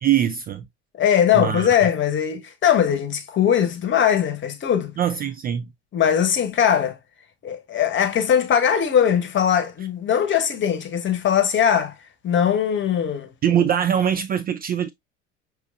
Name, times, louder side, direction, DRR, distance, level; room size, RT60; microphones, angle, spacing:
voice 1, 0.0-0.7 1.3-1.7 5.0-5.7 13.4-14.9, right 9 dB, 25° right, 0.4 m, -22 dB
voice 2, 1.0-4.9 5.9-7.0 7.4-11.9 12.2-13.3, left 9 dB, 30° left, 1.0 m, -20 dB
6.2 x 3.1 x 2.4 m
figure-of-eight pair, 65°, 35 cm